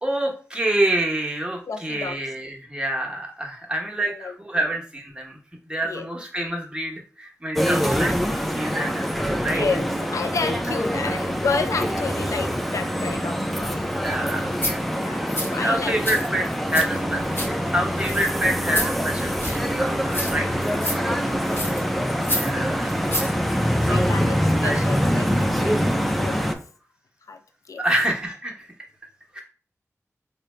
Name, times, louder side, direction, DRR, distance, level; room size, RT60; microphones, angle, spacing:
voice 1, 0.0-5.4 5.7-9.6 13.9-14.8 15.3-17.2 17.7-20.5 22.3-23.4 23.8-24.8 25.9-26.0 27.8-28.7 29.3-29.4, right 1 dB, 15° right, -1 dB, 0.9 m, -27 dB
voice 2, 1.7-2.2 4.0-4.3 5.8-6.1 9.4-13.8 14.9-16.0 21.2-21.4 23.6-25.9 26.2-26.5 27.3-27.4 27.7-27.8, left 5 dB, 75° left, 8 dB, 0.4 m, -31 dB
sound 1, 7.6-26.5, equal, ahead, 0.4 m, -24 dB
sound 2, 14.0-14.1 14.5-14.7 15.3-15.5 16.0-16.8 17.1-17.5 18.0-18.3 18.7-18.9 19.4-19.7 20.1-20.5 20.8-21.0 21.5-21.8 22.2-22.5 22.9-23.3 23.6-23.7, left 1 dB, 40° left, 0.9 m, -28 dB
3.8 x 2.2 x 3.2 m, 0.41 s
wide cardioid pair, 60°, 6 cm